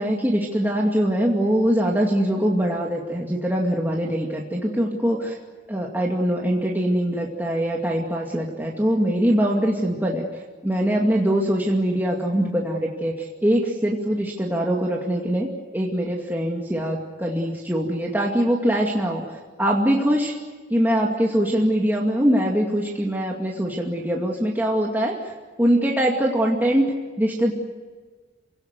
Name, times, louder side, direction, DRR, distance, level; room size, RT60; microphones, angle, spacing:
voice 1, 0.0-5.4 5.7-10.3 10.6-19.2 19.6-20.4 20.7-25.3 25.6-26.9 27.2-27.5, equal, 10° right, -2 dB, 2.3 m, -22 dB
27.5 x 18.5 x 9.6 m, 1.4 s
head